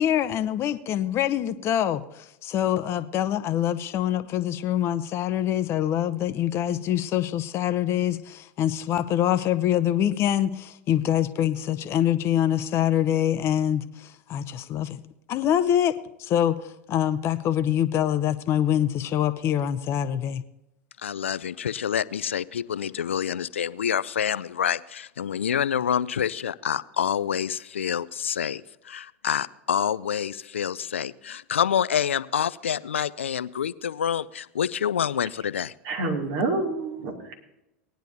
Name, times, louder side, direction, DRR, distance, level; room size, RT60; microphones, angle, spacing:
voice 1, 0.0-15.0 15.3-15.9 16.2-20.4, left 11 dB, 40° left, 0.7 m, -25 dB
voice 2, 21.0-35.7, left 8 dB, 85° left, 0.4 m, -27 dB
voice 3, 35.8-37.4, right 3 dB, 55° right, 2.5 m, -28 dB
19.0 x 10.5 x 2.8 m
hypercardioid pair, 85°, 7 cm